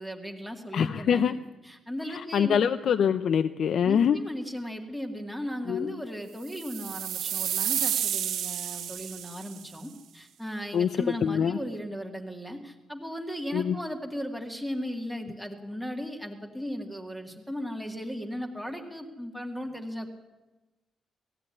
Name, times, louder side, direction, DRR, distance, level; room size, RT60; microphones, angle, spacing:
voice 1, 0.0-1.4 1.6-2.7 3.8-20.1, equal, ahead, 3 dB, 2.0 m, -36 dB
voice 2, 0.7-1.3 2.1-4.2 5.7-5.9 10.7-10.9 11.2-11.6 13.5-13.8, left 8 dB, 55° left, 10 dB, 0.7 m, -24 dB
sound 1, 6.5-9.7, right 10 dB, 85° right, 1.1 m, -31 dB
19.0 x 14.5 x 9.7 m, 1.1 s
wide cardioid pair, 155°, 0 cm